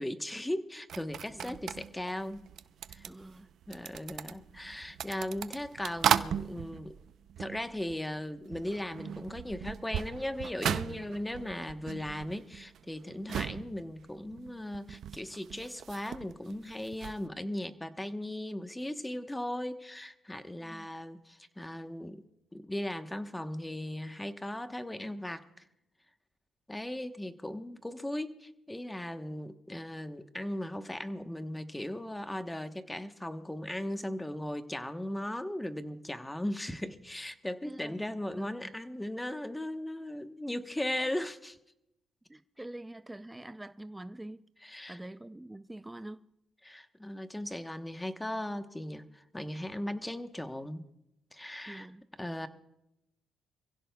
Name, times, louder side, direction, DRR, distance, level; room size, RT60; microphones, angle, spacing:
voice 1, 0.0-2.4 2.9-3.1 3.7-7.0 7.4-22.2 22.5-25.4 26.7-41.6 44.6-45.0 46.6-50.8 51.3-51.9 52.2-52.5, left 1 dB, 10° left, 1.1 m, -37 dB
sound 1, 0.9-8.2 8.5-17.2, right 9 dB, 70° right, 0.6 m, -37 dB
voice 2, 3.1-3.5 20.6-20.9 37.6-38.7 42.3-44.5 44.9-46.3 51.6-52.0, right 1 dB, 10° right, 0.4 m, -46 dB
27.0 x 16.0 x 2.3 m
cardioid pair, 90°, 0 cm